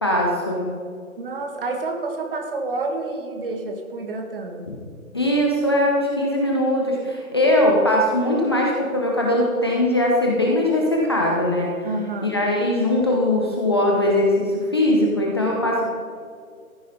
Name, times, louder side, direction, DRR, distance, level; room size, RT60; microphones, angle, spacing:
voice 1, 0.0-0.7 5.1-11.7 12.2-15.9, left 1 dB, 20° left, -2 dB, 0.6 m, -20 dB
voice 2, 1.2-4.7 11.8-12.4, right 3 dB, 40° right, 4 dB, 1.6 m, -29 dB
14.5 x 8.8 x 4.0 m, 2.3 s
figure-of-eight pair, 155°, 43 cm